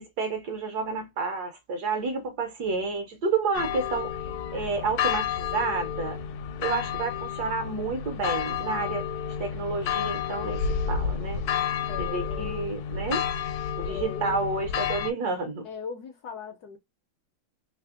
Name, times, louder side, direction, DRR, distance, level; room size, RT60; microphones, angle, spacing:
voice 1, 0.0-4.2 4.5-6.2 6.6-9.1 9.4-11.4 12.0-13.3 13.8-15.7, right 4 dB, 65° right, 1.0 m, -30 dB
sound 1, 3.5-15.1, left 7 dB, 85° left, 1.4 m, -30 dB
voice 2, 11.9-12.6 13.8-14.5 15.6-16.8, left 6 dB, 70° left, 0.9 m, -39 dB
3.3 x 3.1 x 2.4 m
omnidirectional pair, 2.2 m